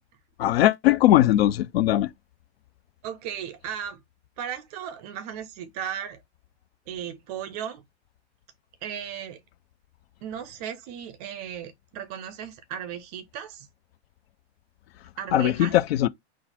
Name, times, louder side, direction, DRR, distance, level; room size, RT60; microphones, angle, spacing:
voice 1, 0.4-2.1 15.3-16.1, left 13 dB, 60° left, 0.5 m, -20 dB
voice 2, 3.0-4.0 4.4-6.2 6.9-7.8 8.8-9.4 10.2-13.7 15.2-15.8, right 9 dB, 35° right, 0.5 m, -36 dB
3.9 x 2.4 x 4.2 m
hypercardioid pair, 140°, 35 cm